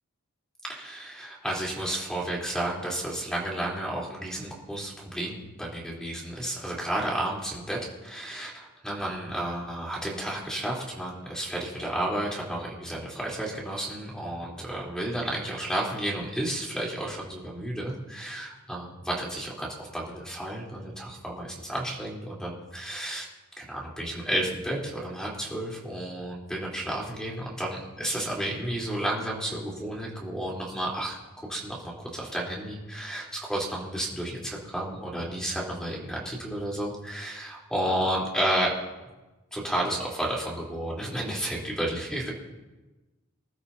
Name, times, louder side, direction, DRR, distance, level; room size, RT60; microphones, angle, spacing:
voice 1, 0.7-23.3 23.6-38.7 39.5-42.3, right 1 dB, 5° left, -4 dB, 3.5 m, -32 dB
26.5 x 13.0 x 2.8 m, 1.1 s
head